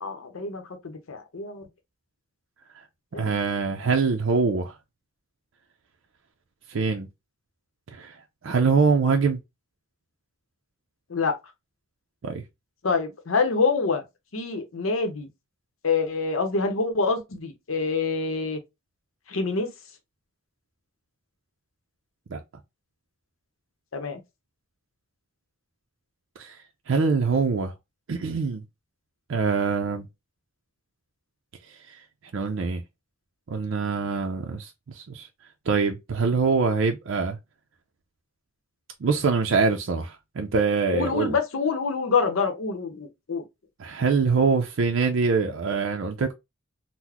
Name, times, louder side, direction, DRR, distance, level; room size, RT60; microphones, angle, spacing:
voice 1, 0.0-1.7 3.1-3.4 11.1-11.4 12.8-14.0 14.3-15.3 15.8-18.6 19.3-19.7 23.9-24.2 40.9-43.4, left 4 dB, 75° left, 0.7 m, -26 dB
voice 2, 3.1-4.8 6.7-7.1 7.9-9.4 12.2-12.4 22.3-22.4 26.4-27.7 28.1-28.6 29.3-30.1 31.7-32.0 32.3-32.8 33.5-35.3 35.7-37.4 39.0-41.3 43.8-46.3, right 4 dB, 65° right, 0.5 m, -24 dB
3.9 x 2.1 x 2.8 m
head